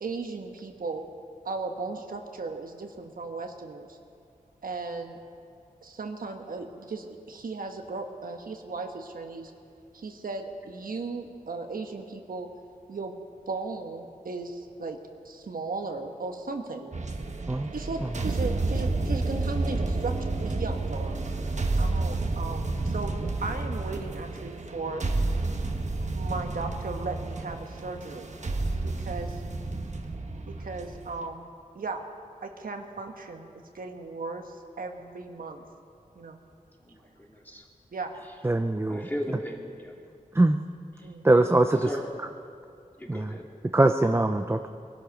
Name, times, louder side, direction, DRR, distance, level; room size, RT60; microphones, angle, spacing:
voice 1, 0.0-1.0 1.4-4.0 4.6-5.2 5.8-9.5 9.9-12.5 12.9-13.1 13.5-15.0 15.2-17.1 17.4-21.1 21.7-25.0 26.1-28.3 28.8-29.4 30.5-31.5 31.7-32.0 32.4-35.6 36.1-36.4 37.9-38.1 41.0-41.3, right 3 dB, 85° right, 4 dB, 1.2 m, -36 dB
sound 1, 16.9-31.2, right 2 dB, 55° right, 1.3 m, -30 dB
voice 2, 36.8-37.7 38.9-40.0 41.0-41.1 41.8-42.3 43.0-43.5, equal, 10° left, -1 dB, 2.3 m, -37 dB
voice 3, 38.4-39.0 40.3-40.6 41.2-41.9 43.1-43.3 43.7-44.7, right 2 dB, 15° right, 6 dB, 0.6 m, -22 dB
20.5 x 12.0 x 5.2 m, 2.4 s
wide cardioid pair, 70°, 14 cm